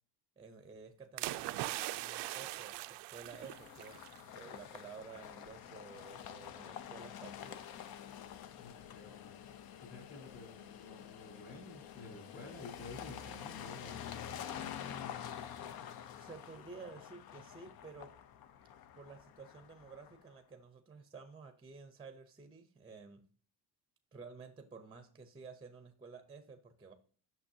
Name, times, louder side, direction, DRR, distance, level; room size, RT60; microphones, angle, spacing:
voice 1, 0.4-7.7 16.1-18.1 18.9-23.2 24.1-26.9, right 4 dB, 10° right, 8 dB, 0.6 m, -52 dB
sound 1, 1.2-4.2 4.5-4.8, right 17 dB, 80° right, 0.5 m, -41 dB
sound 2, 3.3-20.3, left 9 dB, 60° left, 0.7 m, -48 dB
voice 2, 8.5-9.4 9.8-14.7, left 3 dB, 35° left, 0 dB, 3.7 m, -52 dB
8.7 x 6.4 x 2.7 m, 0.41 s
cardioid pair, 165°, 41 cm